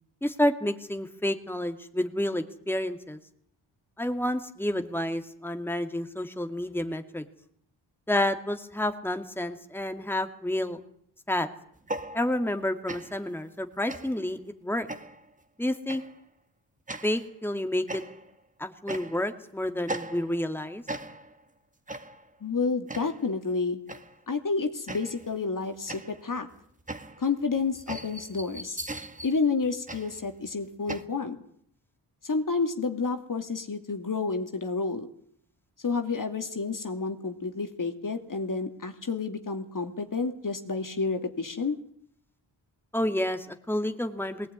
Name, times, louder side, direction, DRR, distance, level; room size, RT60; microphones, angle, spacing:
voice 1, 0.2-3.2 4.0-7.2 8.1-10.8 11.3-11.5 12.1-14.9 15.6-16.0 17.0-18.0 18.6-20.8 42.9-44.5, left 1 dB, 5° left, 6 dB, 2.3 m, -29 dB
sound 1, 11.8-12.6 12.9-13.3 13.9-14.3 14.9-15.3 15.9-16.2 16.9-17.3 17.9-18.4 18.9-19.4 19.9-20.5 20.9-21.4 21.9-22.3 22.9-23.3 23.9-24.2 24.9-25.4 25.9-31.0, right 2 dB, 15° right, 1.8 m, -39 dB
voice 2, 22.4-23.8 24.3-26.5 27.2-28.8 29.2-31.4 32.2-35.1 35.8-41.8, left 4 dB, 45° left, 6 dB, 2.5 m, -30 dB
19.5 x 18.0 x 9.6 m, 0.66 s
cardioid pair, 60°, 45 cm